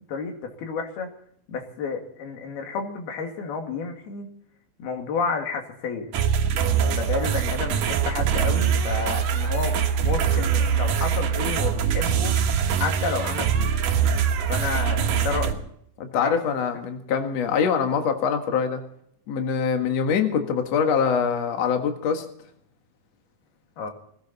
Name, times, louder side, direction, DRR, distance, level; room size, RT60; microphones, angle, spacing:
voice 1, 0.1-1.1 1.5-4.3 4.8-6.1 6.6-9.8 10.0-12.4 12.7-13.7 14.5-15.7 16.1-16.4 23.8-23.9, left 5 dB, 90° left, 4 dB, 4.2 m, -30 dB
sound 1, 6.1-15.5, right 8 dB, 70° right, 2.9 m, -23 dB
voice 2, 16.0-18.8 19.3-22.3, left 6 dB, 50° left, 5 dB, 2.6 m, -24 dB
19.5 x 16.0 x 4.2 m, 0.68 s
omnidirectional pair, 4.3 m